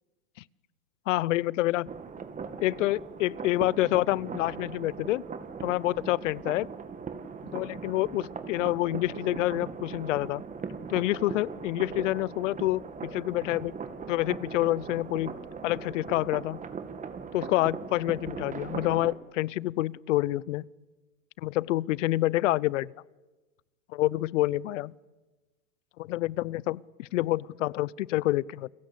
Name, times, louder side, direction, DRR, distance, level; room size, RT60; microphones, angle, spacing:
voice 1, 1.1-1.9 2.6-5.2 5.6-6.7 7.4-10.4 10.9-13.7 14.1-15.3 15.6-16.6 17.3-20.7 21.4-22.9 23.9-24.9 26.0-28.7, left 17 dB, 65° left, 0.8 m, -28 dB
sound 1, 1.9-19.2, right 5 dB, 20° right, 2.1 m, -39 dB
30.0 x 22.5 x 8.5 m
hypercardioid pair, 110°, 40 cm